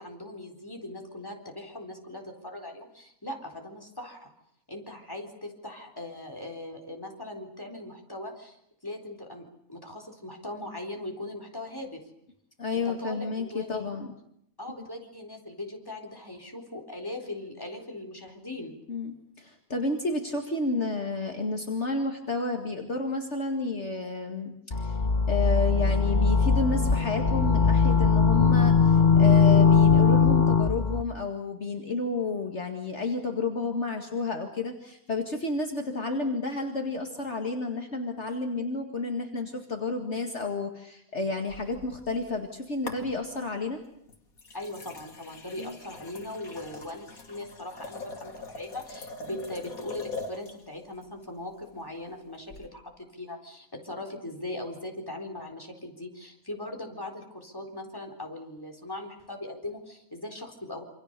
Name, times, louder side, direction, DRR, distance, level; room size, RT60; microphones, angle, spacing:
voice 1, 0.0-4.3 4.7-12.0 12.7-14.0 14.6-18.7 44.5-52.8 53.1-60.8, left 1 dB, 15° left, 2 dB, 4.2 m, -40 dB
voice 2, 12.6-14.1 18.9-25.0 25.3-43.8 45.6-45.8, left 3 dB, 50° left, 3 dB, 2.4 m, -31 dB
sound 1, 24.7-31.0, left 5 dB, 30° left, 1.3 m, -20 dB
sound 2, 41.5-42.5 42.9-43.5 44.1-50.6 52.5-52.7, left 3 dB, 70° left, 2.8 m, -42 dB
27.5 x 26.0 x 6.8 m, 0.75 s
omnidirectional pair, 1.5 m